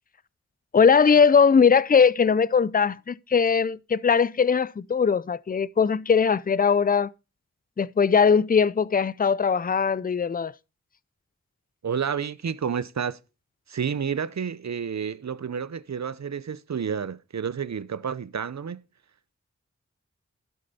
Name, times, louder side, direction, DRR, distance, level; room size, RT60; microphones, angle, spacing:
voice 1, 0.7-7.1 7.8-10.5, left 6 dB, 30° left, 0.4 m, -20 dB
voice 2, 11.8-13.2 13.7-18.8, right 7 dB, 70° right, 0.7 m, -30 dB
12.0 x 6.6 x 4.1 m
wide cardioid pair, 50°, 29 cm